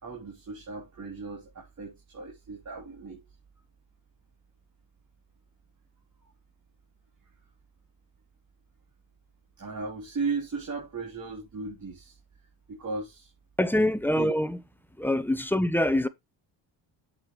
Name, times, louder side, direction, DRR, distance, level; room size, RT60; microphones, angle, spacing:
voice 1, 0.0-3.2 9.6-12.2 12.7-13.3 14.1-14.3, right 4 dB, 40° right, 3.6 m, -36 dB
voice 2, 13.6-14.6 15.0-16.1, left 1 dB, 5° left, 0.8 m, -25 dB
8.0 x 7.7 x 3.2 m
cardioid pair, 120°, 47 cm